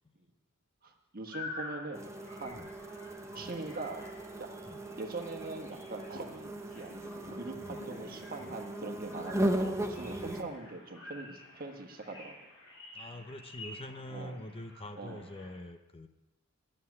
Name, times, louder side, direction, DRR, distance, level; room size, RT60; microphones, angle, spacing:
voice 1, 0.8-2.6 3.3-4.1 4.4-4.5 5.0-12.4 14.1-14.4 14.9-15.3, right 3 dB, 45° right, 4 dB, 1.5 m, -42 dB
sound 1, 1.3-15.6, left 2 dB, 60° left, 6.1 m, -49 dB
sound 2, 1.9-10.4, right 1 dB, 15° right, 0.8 m, -37 dB
voice 2, 7.6-7.9 8.4-8.6 10.1-10.5 12.9-16.1, left 1 dB, 25° left, 8 dB, 0.6 m, -45 dB
10.5 x 7.7 x 9.6 m, 1.0 s
head